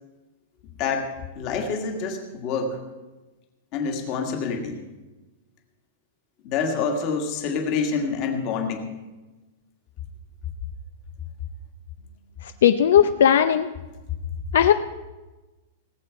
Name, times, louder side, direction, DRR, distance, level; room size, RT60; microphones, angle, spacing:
voice 1, 0.8-2.8 3.7-4.8 6.4-8.9, left 5 dB, 30° left, 4 dB, 1.6 m, -27 dB
voice 2, 12.4-13.7 14.5-14.7, left 9 dB, 70° left, 9 dB, 0.5 m, -17 dB
18.5 x 7.6 x 5.7 m, 1.2 s
supercardioid pair, 175°, 0 cm